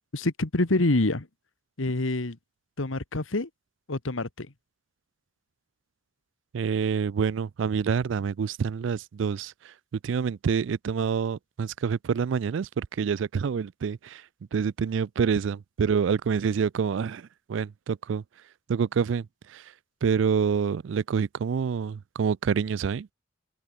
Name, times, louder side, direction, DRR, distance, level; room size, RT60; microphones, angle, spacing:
voice 1, 0.1-1.3 1.8-2.4 2.8-3.5 3.9-4.5, left 2 dB, 85° left, 1.6 m, -26 dB
voice 2, 6.5-9.7 10.0-14.2 14.5-18.2 18.7-19.7 20.0-23.1, right 6 dB, 65° right, 0.4 m, -27 dB
open air
head